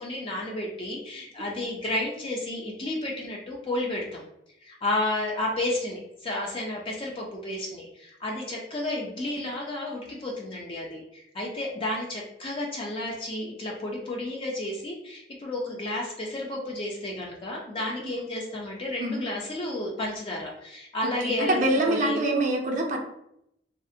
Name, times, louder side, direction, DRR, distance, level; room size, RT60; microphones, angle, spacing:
voice 1, 0.0-4.2 4.6-22.2, left 1 dB, 30° left, -2 dB, 0.4 m, -32 dB
voice 2, 21.2-23.0, right 1 dB, 45° right, 2 dB, 0.4 m, -25 dB
2.5 x 2.0 x 2.6 m, 0.78 s
head